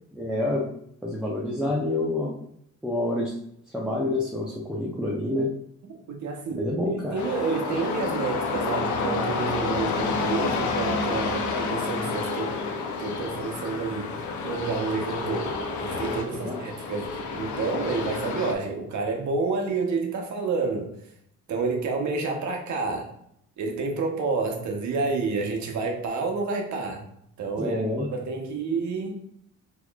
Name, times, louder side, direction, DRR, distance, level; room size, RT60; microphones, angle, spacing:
voice 1, 0.1-0.6 1.0-2.3 2.8-3.3 3.7-5.5 6.6-7.2 16.3-16.6 27.6-28.1, left 1 dB, 5° right, -3 dB, 0.6 m, -27 dB
voice 2, 6.1-12.6 13.0-14.1 14.4-21.0 21.5-23.1 23.6-27.0 27.4-29.1, right 4 dB, 70° right, 2 dB, 0.9 m, -29 dB
sound 1, 7.2-18.5, left 4 dB, 75° left, 0.6 m, -29 dB
4.2 x 3.0 x 2.3 m, 0.72 s
cardioid pair, 90°, 30 cm